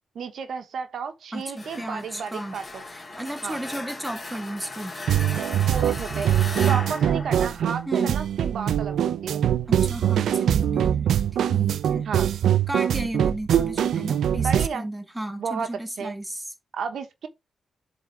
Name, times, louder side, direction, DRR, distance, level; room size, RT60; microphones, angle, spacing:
voice 1, 0.1-2.8 3.4-3.6 5.7-6.3 6.6-9.4 12.0-12.3 14.4-14.9 15.4-15.7 16.0-16.1 16.7-17.3, right 6 dB, 70° right, 1.1 m, -32 dB
voice 2, 1.3-2.5 2.9-5.0 7.9-8.1 9.7-11.1 11.5-12.1 12.7-16.4, right 1 dB, 5° right, 1.6 m, -34 dB
sound 1, 1.6-8.3, left 2 dB, 20° left, 3.2 m, -37 dB
sound 2, 5.1-14.7, right 10 dB, 90° right, 0.4 m, -23 dB
7.8 x 3.8 x 4.5 m
wide cardioid pair, 130°, 0 cm